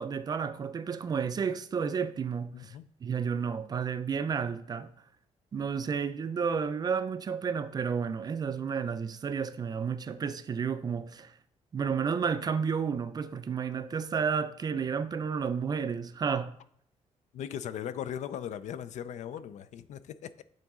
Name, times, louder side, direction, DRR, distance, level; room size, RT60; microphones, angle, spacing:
voice 1, 0.0-2.8 3.0-4.9 5.5-11.3 11.7-16.5, right 6 dB, 30° right, 0.3 m, -31 dB
voice 2, 2.5-2.9 17.3-20.4, left 9 dB, 65° left, 0.4 m, -38 dB
8.9 x 3.9 x 3.6 m
wide cardioid pair, 165°, 13 cm